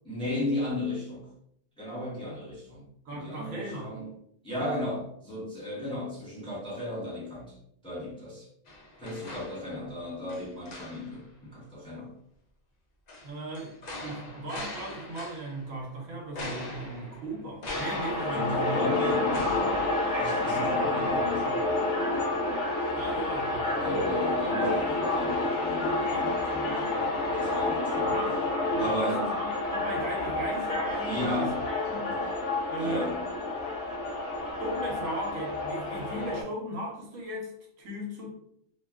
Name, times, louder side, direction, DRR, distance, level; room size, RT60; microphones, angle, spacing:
voice 1, 0.0-1.3 1.8-2.8 3.1-4.1 4.4-7.6 7.8-8.5 9.0-12.1 18.3-19.4 20.1-21.6 23.8-28.2 28.8-29.2 31.0-31.6 32.1-32.3 32.8-33.2, left 1 dB, 5° left, -7 dB, 0.7 m, -34 dB
voice 2, 3.0-3.9 13.2-19.2 22.9-24.1 28.1-31.5 31.9-32.1 32.7-33.1 34.3-37.5 37.8-38.4, right 1 dB, 85° right, -2 dB, 1.2 m, -37 dB
sound 1, 8.7-10.0 10.3-11.3 13.1-15.7 16.3-20.7 21.1-21.2, left 1 dB, 55° left, 0.5 m, -41 dB
sound 2, 17.7-36.4, left 2 dB, 70° left, 0.9 m, -29 dB
2.8 x 2.2 x 2.3 m, 0.72 s
omnidirectional pair, 1.3 m